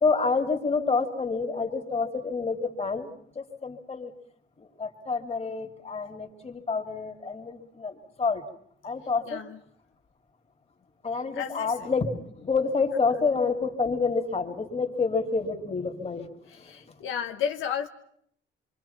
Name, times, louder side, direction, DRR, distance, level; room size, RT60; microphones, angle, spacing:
voice 1, 0.0-3.1 3.4-4.1 4.6-8.4 8.8-9.4 11.0-16.3 16.9-17.0, left 4 dB, 30° left, 4 dB, 2.7 m, -28 dB
voice 2, 9.3-9.6 11.4-11.7 16.6-17.9, left 8 dB, 80° left, 5 dB, 1.0 m, -32 dB
26.0 x 24.0 x 5.8 m, 0.67 s
cardioid pair, 90°, 20 cm